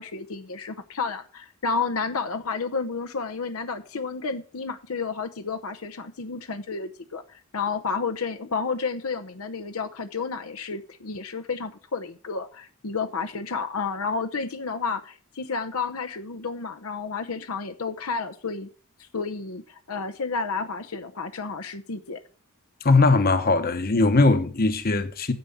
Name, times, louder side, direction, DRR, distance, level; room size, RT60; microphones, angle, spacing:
voice 1, 0.0-18.7 19.0-22.2, left 4 dB, 80° left, 0.8 m, -31 dB
voice 2, 22.8-25.3, left 3 dB, 45° left, 1.0 m, -20 dB
9.5 x 7.8 x 5.5 m
head